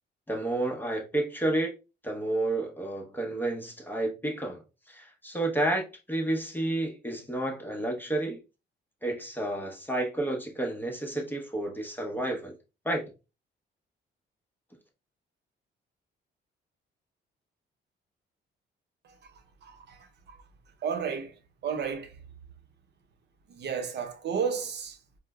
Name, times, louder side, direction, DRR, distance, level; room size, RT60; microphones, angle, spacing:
voice 1, 0.3-1.7 2.0-4.6 4.9-8.4 9.0-12.6 12.8-13.1, right 1 dB, 10° left, 0.8 m, -30 dB
voice 2, 20.8-21.3 21.6-22.1 23.6-25.0, right 6 dB, 60° right, 0.7 m, -31 dB
4.6 x 2.1 x 2.2 m
cardioid pair, 90°, 20 cm